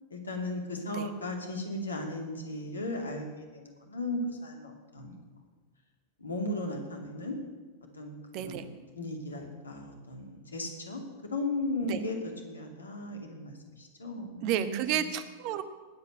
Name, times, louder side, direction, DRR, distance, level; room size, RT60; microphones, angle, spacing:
voice 1, 0.1-5.2 6.2-7.4 7.9-11.0 11.3-12.2 12.4-15.1, left 2 dB, 75° left, 3 dB, 2.5 m, -36 dB
voice 2, 8.3-8.6 11.9-12.0 14.4-15.6, right 11 dB, 45° right, 12 dB, 1.0 m, -31 dB
19.5 x 8.4 x 6.4 m, 1.3 s
figure-of-eight pair, 90°, 0 cm